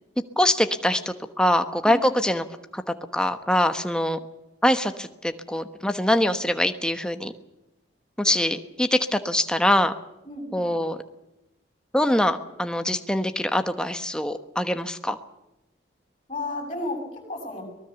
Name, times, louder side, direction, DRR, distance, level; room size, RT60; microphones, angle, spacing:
voice 1, 0.4-2.4 2.7-2.8 3.1-4.2 4.6-7.3 8.2-9.9 10.5-11.0 11.9-15.2, left 1 dB, 5° left, 8 dB, 1.1 m, -23 dB
voice 2, 1.8-2.2 10.3-10.7 16.3-17.6, left 2 dB, 30° left, 1 dB, 6.9 m, -33 dB
23.5 x 19.5 x 7.0 m, 0.91 s
head